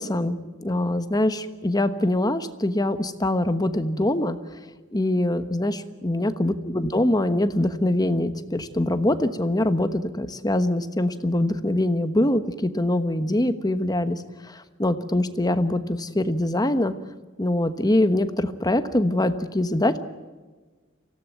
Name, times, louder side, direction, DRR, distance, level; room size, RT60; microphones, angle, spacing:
voice 1, 0.0-4.4 4.9-16.9 17.4-20.0, left 1 dB, 20° left, 10 dB, 1.2 m, -23 dB
25.0 x 17.0 x 9.4 m, 1.3 s
head